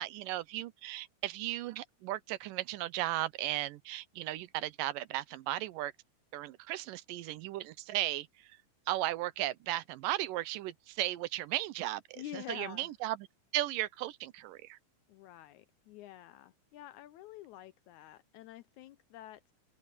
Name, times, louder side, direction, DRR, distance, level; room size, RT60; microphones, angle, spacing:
voice 1, 0.0-5.9 6.3-8.3 8.9-13.2 13.5-14.8, right 15 dB, 85° right, 2.4 m, -36 dB
voice 2, 12.2-12.9 15.1-19.5, left 14 dB, 80° left, 1.8 m, -48 dB
open air
omnidirectional pair, 3.8 m